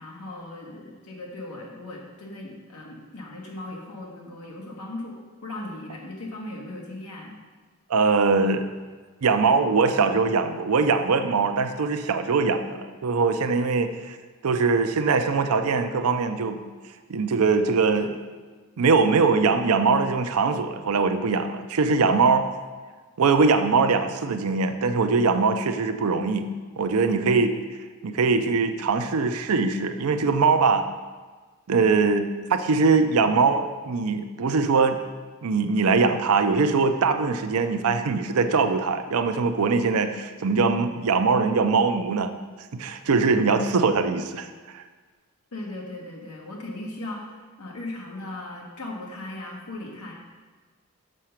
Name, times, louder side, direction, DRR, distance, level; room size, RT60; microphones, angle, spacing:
voice 1, 0.0-5.1 5.4-7.4 45.5-50.1, left 2 dB, 85° left, -2 dB, 1.3 m, -38 dB
voice 2, 7.9-8.6 9.2-14.2 14.4-16.6 17.1-18.2 18.8-22.5 23.2-26.5 26.8-27.6 28.0-30.9 31.7-35.0 35.4-42.3 42.7-44.8, right 4 dB, 70° right, 7 dB, 0.5 m, -22 dB
6.5 x 6.2 x 5.8 m, 1.4 s
head